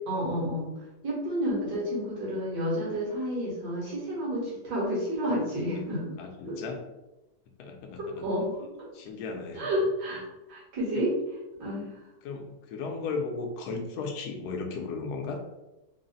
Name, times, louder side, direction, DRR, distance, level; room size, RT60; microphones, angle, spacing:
voice 1, 0.1-0.7 1.0-6.2 6.5-6.6 8.0-8.7 9.6-10.2 10.5-11.1 11.6-11.9, equal, 70° right, -6 dB, 2.0 m, -30 dB
voice 2, 6.2-6.8 7.6-8.3 8.9-9.7 10.9-11.1 12.2-15.4, left 4 dB, 70° left, 3 dB, 1.1 m, -35 dB
3.9 x 2.1 x 3.9 m, 0.98 s
omnidirectional pair, 1.9 m